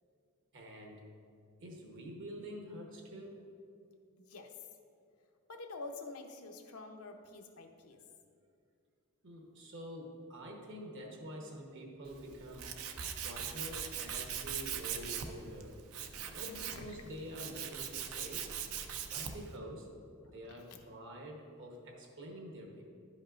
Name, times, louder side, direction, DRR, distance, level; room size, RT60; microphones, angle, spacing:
voice 1, 0.5-1.1 1.6-3.5 9.2-12.7 13.2-15.8 16.3-18.5 19.1-19.9 20.2-22.8, equal, 60° right, 1 dB, 1.0 m, -47 dB
voice 2, 4.2-4.6 5.5-8.0 16.6-16.8 20.2-20.4 20.7-20.8, left 3 dB, 80° left, 4 dB, 0.7 m, -47 dB
Tools, 12.1-19.5, right 8 dB, 75° right, 0.5 m, -41 dB
11.0 x 5.3 x 2.5 m, 2.5 s
head